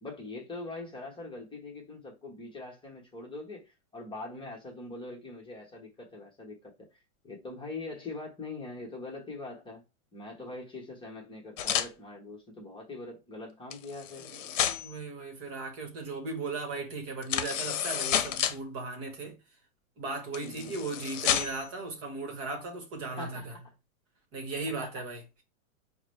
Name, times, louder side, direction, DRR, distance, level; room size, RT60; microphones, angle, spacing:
voice 1, 0.0-7.0 7.2-9.8 10.1-14.3 20.4-20.8 23.2-23.6 24.8-25.0, left 2 dB, 10° left, 1.2 m, -42 dB
sound 1, 11.6-11.9 13.7-15.0 17.2-18.6 20.3-21.7, left 10 dB, 65° left, 0.8 m, -30 dB
voice 2, 14.2-19.4 20.0-23.5 24.3-25.2, right 3 dB, 30° right, 1.3 m, -37 dB
4.7 x 2.2 x 3.2 m
hypercardioid pair, 140°, 42 cm